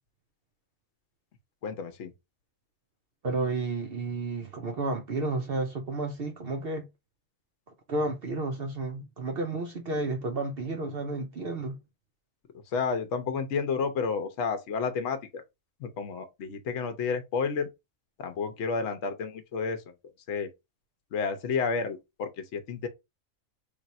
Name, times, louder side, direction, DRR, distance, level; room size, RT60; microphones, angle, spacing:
voice 1, 1.6-2.1 12.7-15.4 15.8-17.7 18.2-19.8 20.3-20.5 21.1-22.9, left 5 dB, 55° left, 1.0 m, -31 dB
voice 2, 3.2-6.9 7.9-11.8, right 2 dB, 55° right, 0.6 m, -31 dB
3.4 x 2.5 x 4.1 m
omnidirectional pair, 1.6 m